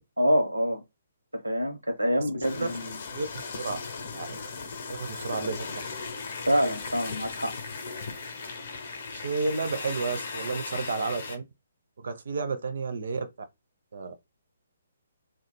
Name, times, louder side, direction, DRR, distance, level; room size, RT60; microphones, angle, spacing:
voice 1, 0.2-0.8 1.4-3.0 6.5-7.5, equal, 85° right, 0.9 m, -26 dB
sound 1, 2.4-11.4, left 4 dB, 45° left, 0.7 m, -37 dB
voice 2, 4.1-4.5 4.9-5.9 9.1-11.4 12.0-13.3 13.9-14.1, right 4 dB, 55° right, 0.6 m, -31 dB
3.6 x 2.3 x 2.2 m
figure-of-eight pair, 130°, 0 cm